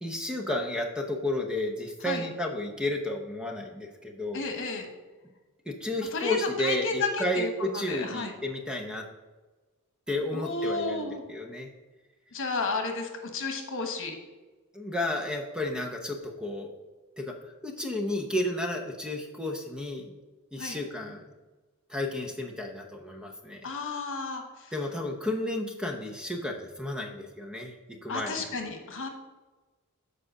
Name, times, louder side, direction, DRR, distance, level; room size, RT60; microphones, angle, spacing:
voice 1, 0.0-4.4 5.7-9.0 10.1-11.7 14.7-16.7 17.2-17.3 17.6-20.1 20.5-21.2 21.9-23.7 24.7-28.5, left 1 dB, 5° right, 2 dB, 0.8 m, -32 dB
voice 2, 4.3-4.9 6.1-8.3 10.3-11.2 12.3-14.2 20.6-20.8 23.6-24.7 28.1-29.1, left 3 dB, 60° left, 5 dB, 1.3 m, -32 dB
7.6 x 4.9 x 6.5 m, 1.2 s
head